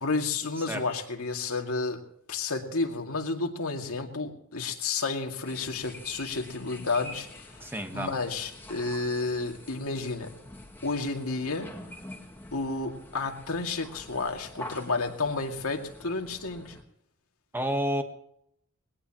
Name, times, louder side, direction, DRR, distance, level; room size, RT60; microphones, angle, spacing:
voice 1, 0.0-2.0 2.3-10.3 10.8-11.7 12.5-16.8, left 3 dB, 80° left, 3 dB, 2.3 m, -31 dB
sound 1, 5.4-16.8, left 1 dB, 10° left, 2.1 m, -46 dB
voice 2, 7.6-8.2 17.5-18.0, equal, 10° right, 6 dB, 1.3 m, -30 dB
21.5 x 18.0 x 3.0 m, 0.75 s
head